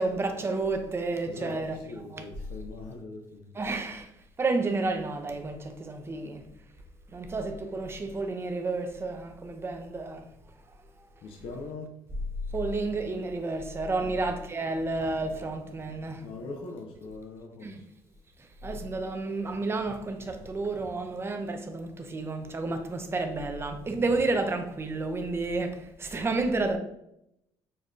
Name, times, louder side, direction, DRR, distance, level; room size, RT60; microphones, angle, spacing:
voice 1, 0.0-2.3 3.5-4.1 4.4-6.4 7.1-10.3 11.5-11.6 12.5-16.3 17.6-17.8 18.4-26.8, right 3 dB, 25° right, 0.5 m, -31 dB
voice 2, 1.3-3.5 11.2-11.9 14.0-14.2 16.2-17.8, left 3 dB, 65° left, 0.6 m, -41 dB
5.3 x 2.2 x 2.5 m
supercardioid pair, 85°, 10 cm